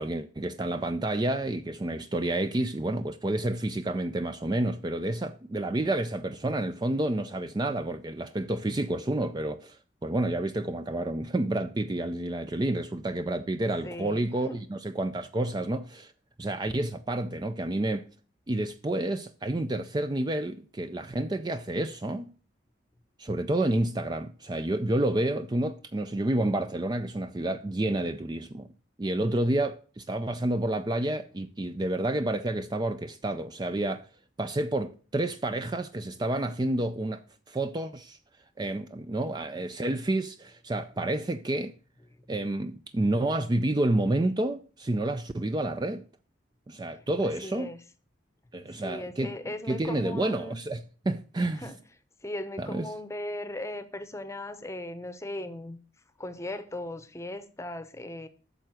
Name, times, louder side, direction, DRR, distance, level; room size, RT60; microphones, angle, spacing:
voice 1, 0.0-16.1 16.4-18.1 18.5-22.3 23.2-28.7 29.0-34.1 34.4-37.2 37.5-38.2 38.6-41.7 42.3-46.0 46.7-47.7 48.5-49.3 49.7-51.7 52.6-52.9, right 1 dB, 20° right, 0.4 m, -29 dB
voice 2, 13.8-14.6 46.9-47.8 48.8-50.6 51.6-51.8 52.2-55.8 56.2-58.3, left 1 dB, 15° left, 0.8 m, -38 dB
9.0 x 6.6 x 6.3 m
head